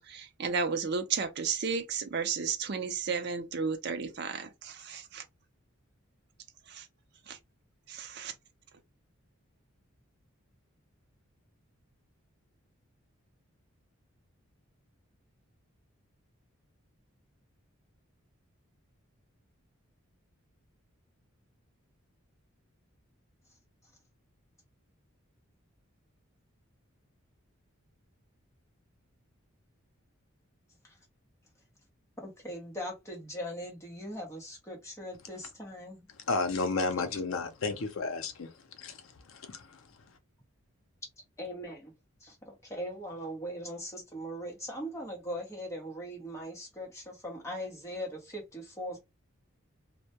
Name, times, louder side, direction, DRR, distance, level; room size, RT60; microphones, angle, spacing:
voice 1, 0.0-5.2 6.7-6.9 7.3-7.4 7.9-8.3, right 5 dB, 50° right, 0.5 m, -33 dB
voice 2, 32.2-36.0 41.4-41.9 42.2-49.0, equal, 15° left, 0.8 m, -40 dB
voice 3, 36.1-40.2, left 3 dB, 70° left, 0.5 m, -33 dB
2.2 x 2.1 x 2.8 m
head